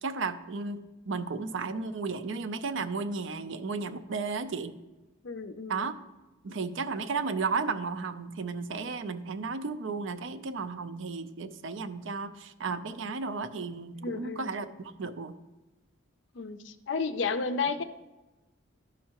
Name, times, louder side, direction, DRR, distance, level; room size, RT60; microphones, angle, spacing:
voice 1, 0.0-4.8 5.7-5.9 6.4-15.3, right 4 dB, 65° right, 10 dB, 0.5 m, -34 dB
voice 2, 5.2-5.8 14.0-14.5 16.3-17.8, left 4 dB, 60° left, 10 dB, 0.5 m, -32 dB
11.5 x 5.5 x 2.9 m, 1.1 s
head